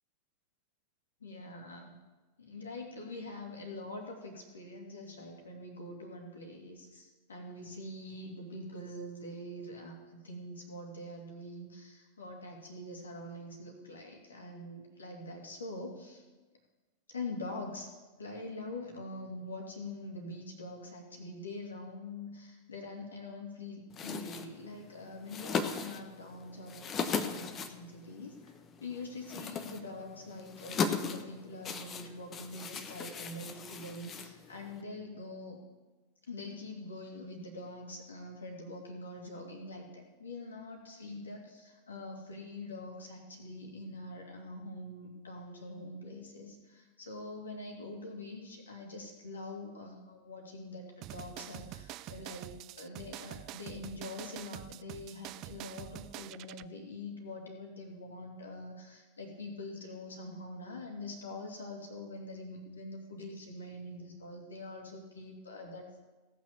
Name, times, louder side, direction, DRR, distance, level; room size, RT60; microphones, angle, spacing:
voice 1, 1.2-1.9 2.4-16.2 17.1-17.9 18.2-28.5 28.8-35.6 36.3-52.5 52.8-65.9, left 2 dB, 70° left, 2 dB, 2.5 m, -44 dB
sound 1, 23.9-34.8, left 6 dB, 30° left, 1.0 m, -38 dB
sound 2, 51.0-56.7, right 16 dB, 40° right, 0.4 m, -46 dB
16.5 x 6.2 x 6.9 m, 1.2 s
figure-of-eight pair, 90°, 0 cm